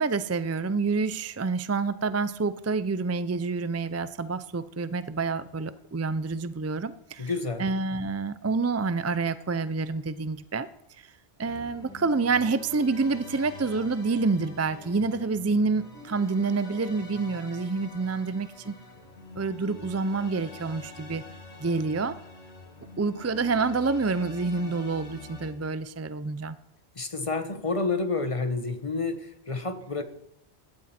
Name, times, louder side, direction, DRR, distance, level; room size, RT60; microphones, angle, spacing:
voice 1, 0.0-7.3 7.6-10.7 11.0-11.1 11.4-18.7 19.3-21.2 21.6-22.2 23.0-26.6, right 4 dB, 25° right, 14 dB, 0.3 m, -28 dB
voice 2, 7.2-7.6 26.9-30.0, left 3 dB, 30° left, 9 dB, 1.1 m, -29 dB
sound 1, 11.4-25.5, left 2 dB, 85° left, 2.3 m, -46 dB
16.5 x 12.5 x 4.3 m, 0.80 s
omnidirectional pair, 1.1 m